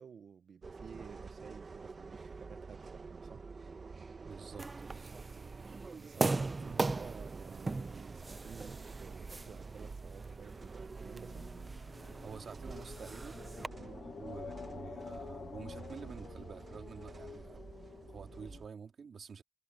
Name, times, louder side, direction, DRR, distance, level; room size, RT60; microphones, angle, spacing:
voice 1, 0.0-3.5 6.0-11.5 13.8-14.0, right 7 dB, 85° right, 1.0 m, -53 dB
sound 1, 0.6-18.7, right 4 dB, 45° right, 1.3 m, -48 dB
voice 2, 4.2-5.5 6.1-6.6 12.2-13.4 14.2-17.6 18.1-19.4, right 6 dB, 70° right, 3.2 m, -49 dB
sound 2, 4.6-13.7, right 3 dB, 30° right, 0.7 m, -40 dB
sound 3, 9.3-18.6, left 6 dB, 85° left, 0.5 m, -50 dB
wide cardioid pair, 150°, 0 cm